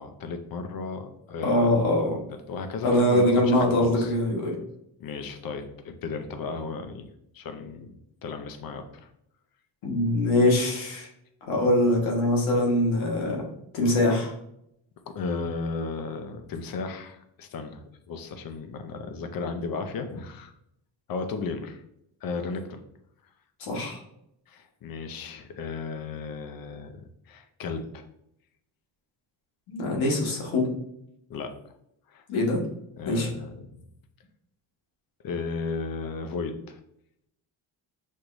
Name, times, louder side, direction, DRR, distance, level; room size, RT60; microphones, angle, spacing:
voice 1, 0.0-1.7 2.3-4.1 5.0-7.1 7.3-9.1 15.1-20.5 21.1-21.8 22.2-22.8 24.5-28.0 31.3-31.6 32.1-32.2 33.0-33.9 35.2-36.8, left 4 dB, 50° left, 7 dB, 0.6 m, -35 dB
voice 2, 1.4-2.2 2.8-4.6 9.8-11.1 11.5-13.4 13.7-14.3 23.6-24.0 29.7-30.7 32.3-32.6 33.0-33.3, left 1 dB, 85° left, -1 dB, 1.4 m, -23 dB
6.4 x 3.0 x 2.5 m, 0.78 s
cardioid pair, 125°, 46 cm